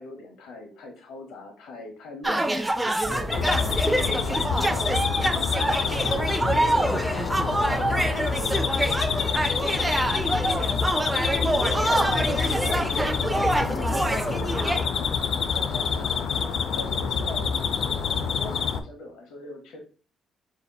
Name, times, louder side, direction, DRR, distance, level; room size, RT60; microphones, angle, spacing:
voice 1, 0.0-2.6 3.1-3.4 3.7-5.0 11.3-12.8 15.2-16.5 16.7-19.8, left 2 dB, 85° left, 3 dB, 0.9 m, -41 dB
sound 1, 2.2-14.9, right 1 dB, 10° right, 0.3 m, -26 dB
sound 2, 3.0-16.8, left 1 dB, 45° left, 1.6 m, -41 dB
voice 2, 3.0-3.6 5.8-9.6 11.5-13.7, equal, 20° left, 0 dB, 1.5 m, -38 dB
sound 3, 3.3-18.8, left 6 dB, 70° left, 0.3 m, -27 dB
4.9 x 2.8 x 2.2 m, 0.39 s
cardioid pair, 90°, 0 cm